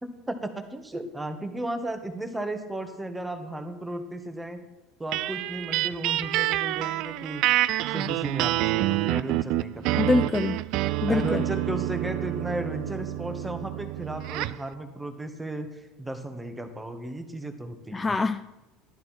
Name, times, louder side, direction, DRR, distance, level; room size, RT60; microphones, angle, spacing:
voice 1, 0.0-4.6 5.0-7.4 7.9-10.3 11.1-18.2, right 1 dB, 10° right, 7 dB, 1.8 m, -35 dB
sound 1, 5.1-14.6, right 16 dB, 55° right, 0.4 m, -27 dB
voice 2, 10.0-10.6 11.0-11.5 17.9-18.5, left 4 dB, 20° left, 10 dB, 0.5 m, -25 dB
14.0 x 11.0 x 4.5 m, 1.0 s
figure-of-eight pair, 70°, 0 cm